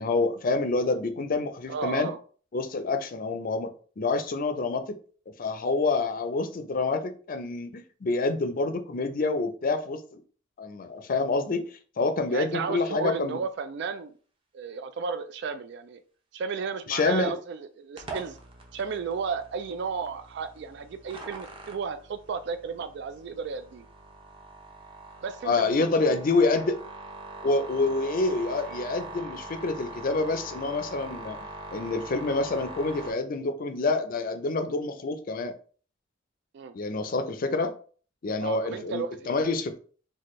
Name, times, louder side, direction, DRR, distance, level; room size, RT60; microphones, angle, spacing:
voice 1, 0.0-2.1 2.5-5.0 5.4-10.2 10.6-11.7 12.0-13.4 16.9-17.4 25.4-26.8 27.4-31.4 31.7-35.5 36.7-37.7 38.2-39.7, left 3 dB, 45° left, 9 dB, 0.5 m, -27 dB
voice 2, 1.7-2.2 12.3-14.1 14.5-16.0 16.3-18.4 18.7-23.9 25.2-25.7 26.0-26.2 36.5-36.7 38.4-39.2, right 5 dB, 65° right, 10 dB, 0.3 m, -33 dB
sound 1, 18.0-33.1, right 2 dB, 30° right, 0.7 m, -42 dB
4.1 x 2.3 x 3.1 m, 0.41 s
head